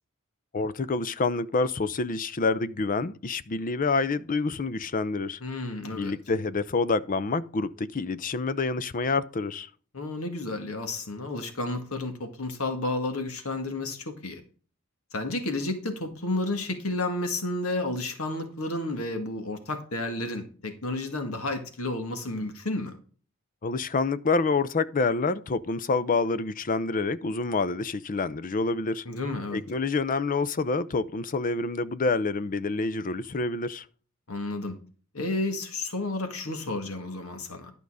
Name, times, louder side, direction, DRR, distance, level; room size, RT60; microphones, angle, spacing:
voice 1, 0.5-5.4 5.9-9.7 23.6-29.0 29.5-33.9, left 3 dB, 40° left, 0.6 m, -27 dB
voice 2, 5.4-6.1 9.9-14.4 15.1-23.0 29.0-29.6 34.3-34.8 35.1-37.7, left 2 dB, 70° left, 1.8 m, -31 dB
12.0 x 5.4 x 4.9 m
head